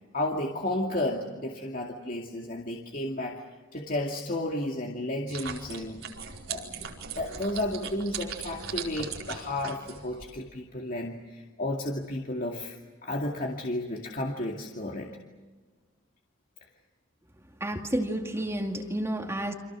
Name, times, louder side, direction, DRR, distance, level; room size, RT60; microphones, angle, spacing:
voice 1, 0.1-3.4 3.7-6.0 6.5-12.8 13.0-15.1, left 1 dB, 45° left, 0 dB, 2.4 m, -32 dB
sound 1, 5.3-10.3, right 6 dB, 85° right, 4.7 m, -39 dB
voice 2, 17.6-19.5, right 1 dB, 15° right, 2 dB, 2.4 m, -30 dB
30.0 x 26.5 x 6.3 m, 1.3 s
head